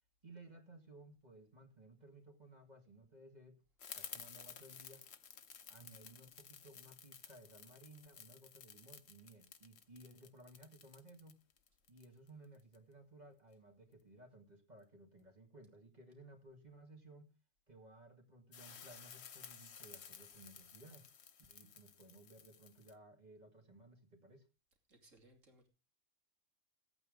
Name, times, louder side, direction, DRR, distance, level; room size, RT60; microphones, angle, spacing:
voice 1, 0.2-3.6 4.0-5.1 5.7-11.4 11.9-17.3 17.7-21.1 21.5-24.5, right 2 dB, 30° right, 4 dB, 2.4 m, -59 dB
sound 1, 3.8-12.8 18.5-22.9, left 7 dB, 60° left, 1.1 m, -54 dB
voice 2, 24.9-25.7, right 1 dB, 70° right, 3 dB, 3.2 m, -65 dB
15.0 x 8.8 x 5.2 m, 0.32 s
omnidirectional pair, 1.4 m